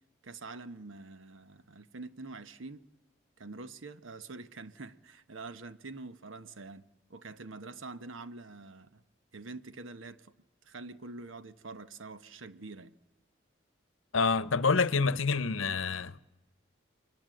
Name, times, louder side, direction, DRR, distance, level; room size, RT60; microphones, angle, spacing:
voice 1, 0.2-2.8 3.4-6.8 7.1-9.0 9.3-10.3 10.6-13.0, right 3 dB, 85° right, 1.1 m, -45 dB
voice 2, 14.1-16.2, left 4 dB, 90° left, 0.8 m, -27 dB
29.5 x 23.5 x 7.7 m
head